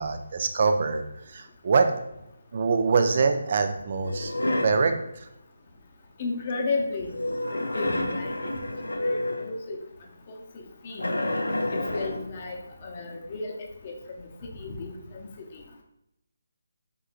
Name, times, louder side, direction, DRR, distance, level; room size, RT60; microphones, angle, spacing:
voice 1, 0.0-1.9 2.5-4.3 4.6-5.3, right 4 dB, 45° right, 7 dB, 0.5 m, -24 dB
sound 1, 4.0-4.9 7.1-9.6 11.0-12.3, left 1 dB, 80° left, 0.5 m, -29 dB
voice 2, 6.2-7.1 7.7-8.3 9.0-9.8 10.3-10.4 10.8-11.1 11.7-13.5 13.8-14.3 14.5-15.6, left 3 dB, 35° left, 1 dB, 0.7 m, -33 dB
4.7 x 3.7 x 2.4 m, 0.83 s
figure-of-eight pair, 150°, 0 cm